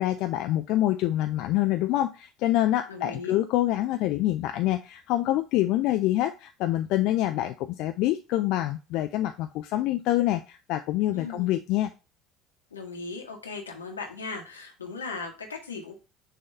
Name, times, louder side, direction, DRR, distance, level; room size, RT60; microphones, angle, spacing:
voice 1, 0.0-11.9, left 14 dB, 55° left, 7 dB, 0.4 m, -26 dB
voice 2, 2.9-3.4 11.1-11.5 12.7-16.0, left 4 dB, 80° left, 2 dB, 1.2 m, -37 dB
6.6 x 2.8 x 5.1 m, 0.29 s
figure-of-eight pair, 60°, 0 cm